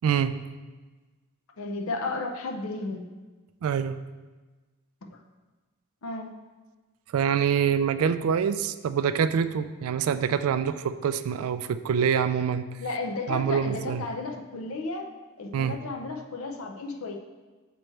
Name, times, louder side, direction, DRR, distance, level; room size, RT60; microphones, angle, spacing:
voice 1, 0.0-0.3 3.6-4.0 7.1-12.6 13.3-14.0 15.5-15.8, right 7 dB, 70° right, 13 dB, 0.3 m, -25 dB
voice 2, 1.6-3.1 5.1-5.2 6.0-6.3 12.8-15.1 15.4-17.2, left 3 dB, 70° left, 3 dB, 0.6 m, -33 dB
7.6 x 3.0 x 4.5 m, 1.3 s
head